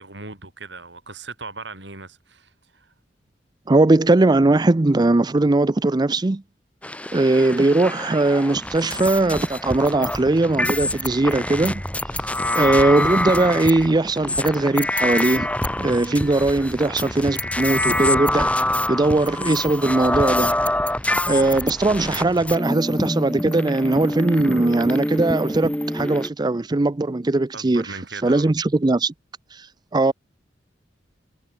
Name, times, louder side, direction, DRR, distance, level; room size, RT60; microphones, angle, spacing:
voice 1, 0.0-2.9 27.5-28.5, right 3 dB, 75° right, 7.7 m, -38 dB
voice 2, 3.7-6.4 7.1-11.8 12.5-15.5 15.8-18.5 18.9-20.5 21.3-27.9 28.2-29.1 29.9-30.1, right 2 dB, 25° right, 0.5 m, -19 dB
sound 1, 6.8-26.3, left 1 dB, 10° left, 4.0 m, -26 dB
head